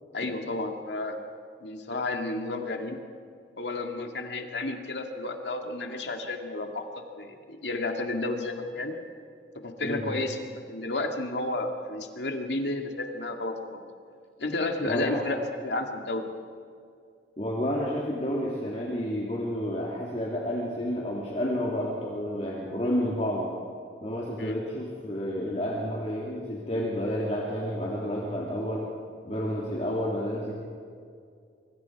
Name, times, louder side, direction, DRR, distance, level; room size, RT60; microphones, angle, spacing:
voice 1, 0.1-1.2 1.6-3.0 3.6-9.0 9.6-13.8 14.4-16.3 24.4-24.6 29.9-30.1, left 2 dB, 75° left, 4 dB, 2.1 m, -32 dB
voice 2, 9.8-10.2 14.8-15.2 17.4-23.5 24.0-28.9 29.2-30.5, equal, 35° left, -4 dB, 2.8 m, -30 dB
26.0 x 24.0 x 4.7 m, 2.3 s
head